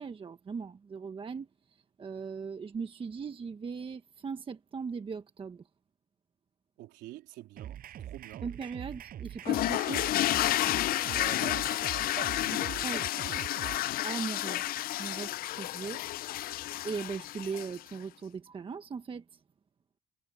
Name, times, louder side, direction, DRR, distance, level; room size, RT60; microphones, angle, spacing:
voice 1, 0.0-1.5 2.0-5.6 8.4-10.1 12.8-13.0 14.0-14.6 15.0-16.0 16.3-16.4 16.8-19.4, right 5 dB, 30° right, 1.3 m, -39 dB
voice 2, 6.8-8.5 11.0-13.8, right 16 dB, 85° right, 3.7 m, -47 dB
sound 1, 7.6-13.8, right 11 dB, 60° right, 6.8 m, -43 dB
sound 2, 8.0-8.3 8.6-9.3 9.6-10.9 11.1-13.0, right 1 dB, 10° right, 4.6 m, -59 dB
sound 3, 9.5-17.9, left 15 dB, 60° left, 0.4 m, -31 dB
cardioid pair, 110°, 17 cm